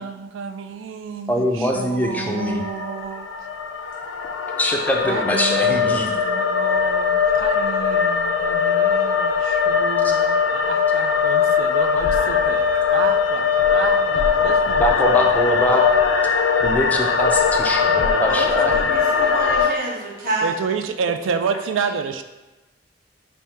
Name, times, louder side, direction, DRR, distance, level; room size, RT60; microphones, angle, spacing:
voice 1, 0.0-3.3 5.0-15.5 18.7-18.8 20.4-22.2, right 6 dB, 80° right, 9 dB, 0.3 m, -30 dB
voice 2, 1.3-2.6 4.6-6.1 10.0-10.1 14.8-15.9 16.6-18.7, left 1 dB, 10° left, 0 dB, 0.4 m, -22 dB
sound 1, 2.3-19.7, left 6 dB, 70° left, 0.4 m, -20 dB
voice 3, 18.3-20.6 21.4-21.6, right 1 dB, 50° right, -4 dB, 1.0 m, -28 dB
3.5 x 2.6 x 4.2 m, 1.1 s
head